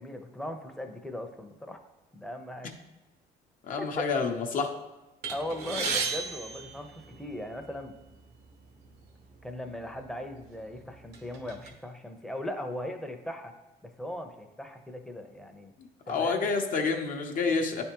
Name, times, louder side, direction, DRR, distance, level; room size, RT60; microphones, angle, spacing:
voice 1, 0.0-1.8 2.1-2.7 3.8-3.9 5.3-7.9 9.4-13.5 13.8-15.7 16.1-16.5, left 1 dB, 5° left, 5 dB, 0.6 m, -38 dB
voice 2, 3.6-4.7 16.1-17.8, left 4 dB, 55° left, 4 dB, 0.7 m, -28 dB
sound 1, 5.2-7.6 8.4-8.5 8.8-9.0 9.9-10.0 10.5-11.7, right 4 dB, 75° right, 0.9 m, -34 dB
9.6 x 3.5 x 2.9 m, 1.1 s
cardioid pair, 110°, 17 cm